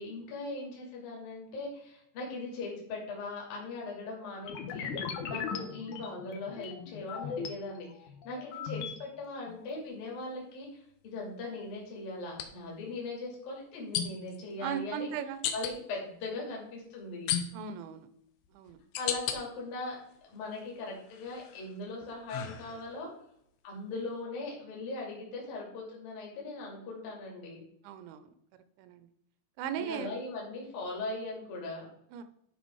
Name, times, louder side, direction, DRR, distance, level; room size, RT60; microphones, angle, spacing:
voice 1, 0.0-4.9 5.3-15.1 15.5-17.3 18.9-20.0 20.3-23.1 23.6-27.6 29.8-31.9, left 2 dB, 55° left, -2 dB, 4.2 m, -40 dB
sound 1, 4.4-7.5 8.0-9.0, left 6 dB, 85° left, 1.7 m, -38 dB
sound 2, 9.5-9.7 12.3-12.5 13.9-14.4 15.4-15.7 17.3-17.8 18.4-19.4 19.9-20.6 21.1-23.1, left 9 dB, 70° left, 2.4 m, -35 dB
voice 2, 14.6-15.4 17.5-18.1 18.5-18.8 27.8-28.3 28.8-29.1 29.6-30.1 32.1-32.2, right 8 dB, 85° right, 11 dB, 3.1 m, -37 dB
12.5 x 4.7 x 4.6 m, 0.75 s
omnidirectional pair, 5.1 m